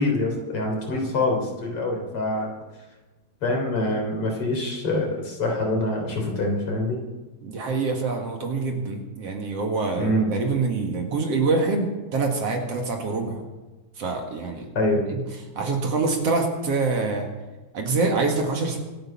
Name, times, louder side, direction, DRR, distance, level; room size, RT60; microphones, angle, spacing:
voice 1, 0.0-2.5 3.4-7.0 10.0-10.3 14.7-15.0, left 2 dB, 50° left, 1 dB, 4.2 m, -25 dB
voice 2, 7.4-13.4 14.0-14.7 15.1-15.2 15.6-17.3 17.7-18.8, right 3 dB, 55° right, 2 dB, 2.8 m, -25 dB
25.5 x 8.9 x 5.9 m, 1.2 s
omnidirectional pair, 3.4 m